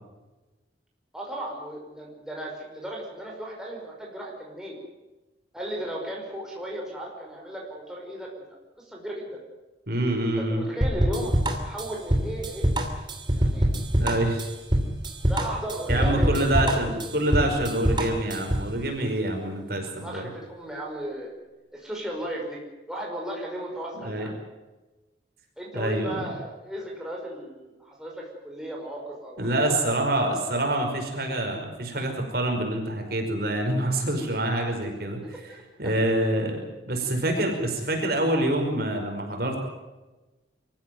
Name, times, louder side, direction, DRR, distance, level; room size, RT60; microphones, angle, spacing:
voice 1, 1.1-4.8 5.5-8.5 8.8-9.4 10.4-11.4 11.6-12.7 13.3-13.7 15.2-16.9 20.0-21.3 21.7-22.6 22.9-24.3 25.6-29.8 30.3-30.6 35.5-35.6, right 1 dB, 5° right, -2 dB, 5.5 m, -35 dB
voice 2, 9.9-10.6 14.0-14.5 15.9-20.3 24.0-24.3 25.7-26.3 29.4-35.2 35.8-39.6, right 1 dB, 50° right, 3 dB, 5.3 m, -26 dB
sound 1, 10.8-18.7, equal, 25° right, 3.0 m, -24 dB
25.0 x 15.0 x 9.4 m, 1.1 s
head